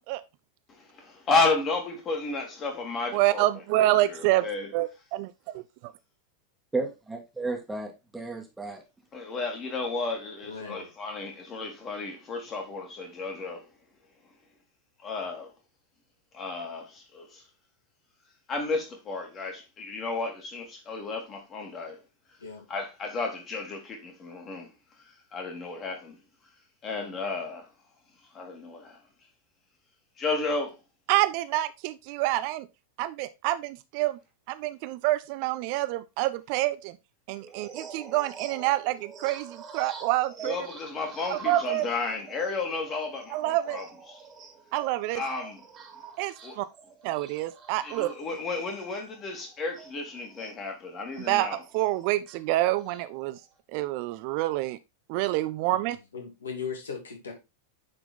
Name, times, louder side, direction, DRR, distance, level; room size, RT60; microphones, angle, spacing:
voice 1, 0.7-3.5 3.8-4.7 9.1-13.6 15.0-15.5 16.3-17.4 18.5-22.0 22.7-24.7 25.3-26.2 26.8-27.7 28.3-29.0 30.2-30.8 40.4-44.2 45.1-45.6 46.4-46.6 47.8-51.6, left 3 dB, 25° left, 2.9 m, -32 dB
voice 2, 3.1-4.4 4.7-4.9 5.2-5.3 31.1-32.7 33.0-34.2 34.5-37.0 37.3-40.6 41.3-41.9 43.3-43.8 44.7-45.2 46.2-46.7 47.0-48.1 51.2-53.4 53.7-54.8 55.1-56.0, right 16 dB, 45° right, 0.5 m, -27 dB
voice 3, 6.7-8.8, right 3 dB, 5° right, 2.1 m, -33 dB
voice 4, 10.4-10.9 22.4-22.7 56.1-57.3, left 6 dB, 70° left, 2.5 m, -37 dB
sound 1, 37.4-50.6 51.1-53.5, right 6 dB, 30° right, 2.4 m, -46 dB
9.6 x 4.6 x 3.7 m
figure-of-eight pair, 90°, 0 cm